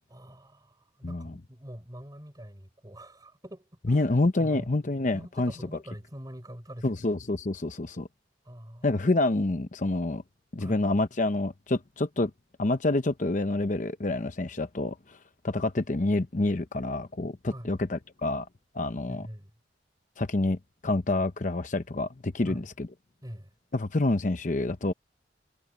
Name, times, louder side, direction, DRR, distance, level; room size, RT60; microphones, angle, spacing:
voice 1, 0.1-4.0 4.4-4.7 5.1-6.9 8.4-9.0 10.6-10.8 17.5-17.7 19.1-19.5 22.5-22.6 23.2-23.5, equal, 20° right, 4.6 m, -44 dB
voice 2, 1.0-1.4 3.9-5.5 6.8-8.1 8.8-10.2 10.5-12.3 12.6-15.2 15.4-18.5 18.7-19.2 20.2-20.6 20.8-22.9 23.7-24.9, left 2 dB, 45° left, 0.8 m, -27 dB
head